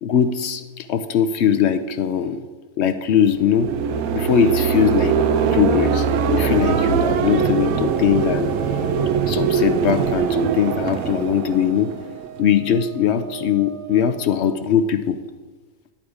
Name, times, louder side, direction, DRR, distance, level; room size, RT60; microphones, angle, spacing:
voice 1, 0.0-2.4 2.8-3.7 4.1-5.2 5.5-8.5 9.3-11.9 12.4-15.2, left 8 dB, 65° left, 10 dB, 0.7 m, -20 dB
sound 1, 3.4-12.4, right 6 dB, 75° right, 1.0 m, -21 dB
Wind instrument woodwind instrument, 10.2-14.6, right 12 dB, 15° right, 0.8 m, -40 dB
11.5 x 8.7 x 4.8 m, 1.3 s
omnidirectional pair, 1.6 m